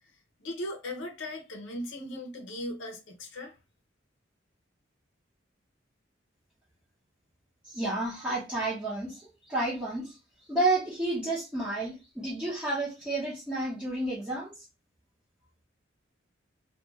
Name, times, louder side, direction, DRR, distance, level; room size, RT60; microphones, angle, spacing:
voice 1, 0.4-3.5, left 1 dB, 85° left, 0.7 m, -38 dB
voice 2, 7.7-10.1 10.5-14.5, right 2 dB, 5° right, 0.7 m, -31 dB
2.4 x 2.2 x 3.0 m
head